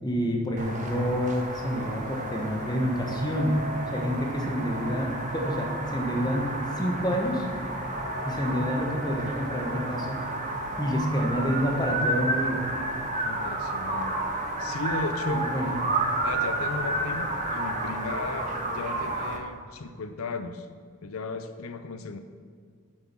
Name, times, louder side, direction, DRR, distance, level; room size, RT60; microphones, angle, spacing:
voice 1, 0.0-3.6 3.9-7.5 8.2-10.2 10.8-12.6 15.5-15.7, equal, 20° left, 1 dB, 1.3 m, -28 dB
sound 1, 0.6-19.4, right 2 dB, 35° right, 1.2 m, -31 dB
voice 2, 13.2-14.2 14.6-15.5 16.2-20.7 21.0-22.2, left 3 dB, 80° left, 9 dB, 0.5 m, -35 dB
7.7 x 7.2 x 6.0 m, 2.1 s
head